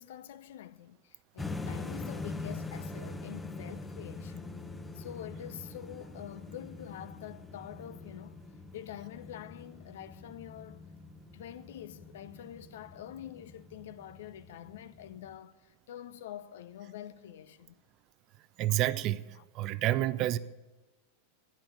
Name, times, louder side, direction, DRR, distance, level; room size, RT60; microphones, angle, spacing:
voice 1, 0.0-4.6 4.9-8.4 8.7-10.8 11.3-17.8 19.4-19.5, left 11 dB, 55° left, 0.7 m, -46 dB
sound 1, 1.4-15.4, left 3 dB, 10° left, 0.9 m, -44 dB
voice 2, 18.6-19.2 19.5-20.4, right 14 dB, 40° right, 0.6 m, -28 dB
12.0 x 10.0 x 8.5 m
figure-of-eight pair, 90°, 0 cm